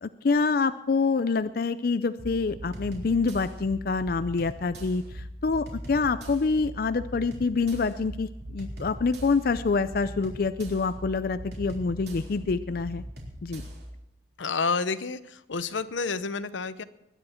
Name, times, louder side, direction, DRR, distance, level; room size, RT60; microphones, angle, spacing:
voice 1, 0.0-13.0 13.4-13.6, left 4 dB, 50° left, 12 dB, 0.4 m, -26 dB
sound 1, 2.2-13.9, equal, 60° right, 3.7 m, -40 dB
voice 2, 14.4-15.2 15.5-16.8, left 4 dB, 90° left, 13 dB, 0.8 m, -29 dB
21.0 x 10.0 x 4.4 m, 0.88 s
head